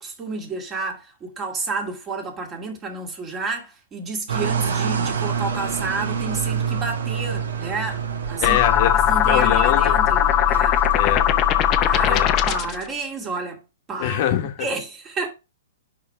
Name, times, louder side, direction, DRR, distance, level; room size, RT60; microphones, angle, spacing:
voice 1, 0.0-8.6 8.9-10.8 11.8-13.6 13.9-14.2 14.6-15.3, right 3 dB, 20° right, 1.9 m, -30 dB
sound 1, 4.3-12.3, right 6 dB, 80° right, 1.3 m, -28 dB
voice 2, 8.4-8.9 9.2-10.0 10.9-11.3 12.0-12.3 14.0-14.7, left 10 dB, 50° left, 1.2 m, -23 dB
sound 2, 8.4-12.8, left 11 dB, 30° left, 0.6 m, -19 dB
5.1 x 4.4 x 4.8 m
hypercardioid pair, 130°, 0 cm